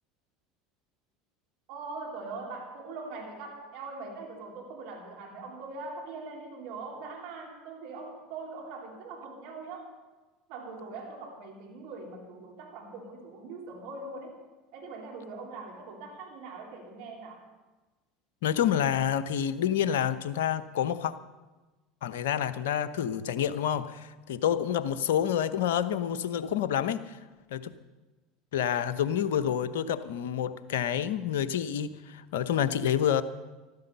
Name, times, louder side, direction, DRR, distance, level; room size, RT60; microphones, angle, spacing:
voice 1, 1.7-9.9 10.5-14.4 14.7-17.4, right 3 dB, 65° right, 1 dB, 3.2 m, -42 dB
voice 2, 18.4-21.1 22.0-27.2 27.5-27.7 28.5-33.2, left 9 dB, 75° left, 11 dB, 0.8 m, -28 dB
14.5 x 12.5 x 6.8 m, 1.2 s
hypercardioid pair, 75°, 0 cm